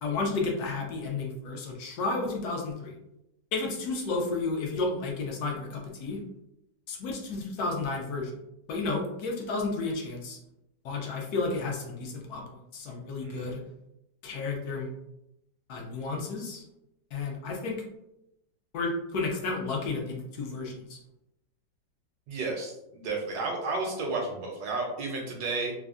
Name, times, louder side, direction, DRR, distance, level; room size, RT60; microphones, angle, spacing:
voice 1, 0.0-2.9 3.5-6.2 6.9-8.3 8.7-10.4 10.8-12.4 12.7-13.6 14.2-14.9 15.7-16.6 17.1-17.8 18.7-21.0, left 3 dB, 70° left, 0 dB, 0.9 m, -32 dB
voice 2, 22.3-25.7, right 3 dB, 70° right, 1 dB, 1.0 m, -32 dB
3.4 x 2.0 x 2.4 m, 0.85 s
omnidirectional pair, 2.0 m